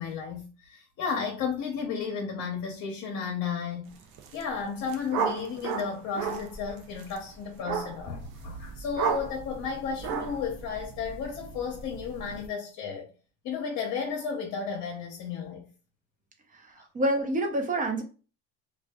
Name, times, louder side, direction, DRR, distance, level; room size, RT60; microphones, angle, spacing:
voice 1, 0.0-3.9 4.3-13.1 13.4-15.6 16.8-16.9, left 6 dB, 60° left, 0.7 m, -33 dB
sound 1, 4.0-4.4 4.7-12.5, right 7 dB, 75° right, 0.6 m, -35 dB
voice 2, 16.5-18.0, right 1 dB, 25° right, 0.6 m, -28 dB
2.5 x 2.3 x 2.2 m
supercardioid pair, 100°, 34 cm